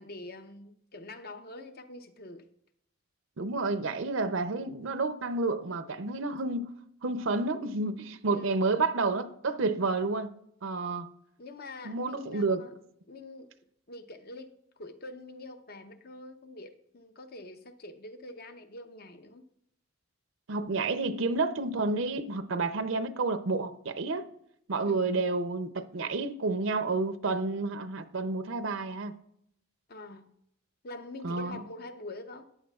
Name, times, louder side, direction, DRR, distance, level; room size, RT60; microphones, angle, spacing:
voice 1, 0.0-2.5 8.3-8.7 11.4-12.7 13.1-13.5 13.9-19.4 24.9-25.2 29.9-30.3 30.8-32.4, left 2 dB, 50° left, 0.8 m, -45 dB
voice 2, 3.4-6.7 7.0-10.3 10.6-11.1 11.8-12.6 20.5-24.3 24.7-29.1 31.2-31.6, right 3 dB, 70° right, 0.6 m, -30 dB
13.5 x 9.0 x 2.4 m
head